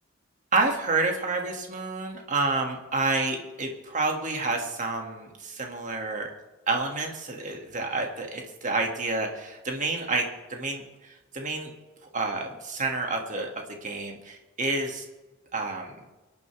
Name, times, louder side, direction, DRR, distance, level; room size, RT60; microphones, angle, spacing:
voice 1, 0.5-6.3 6.7-11.7 12.1-13.5 13.8-15.1 15.5-16.0, right 3 dB, 40° right, 2 dB, 2.2 m, -29 dB
25.0 x 11.0 x 3.5 m, 1.2 s
head